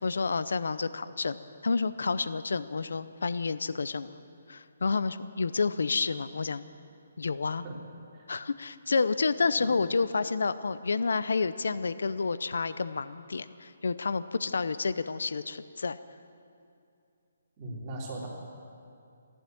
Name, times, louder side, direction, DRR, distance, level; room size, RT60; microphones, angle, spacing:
voice 1, 0.0-4.1 4.5-6.6 7.2-7.6 8.3-16.0, left 4 dB, 80° left, 14 dB, 0.6 m, -29 dB
voice 2, 17.6-18.3, right 2 dB, 25° right, -4 dB, 2.9 m, -38 dB
15.0 x 11.5 x 7.7 m, 2.5 s
hypercardioid pair, 170°, 0 cm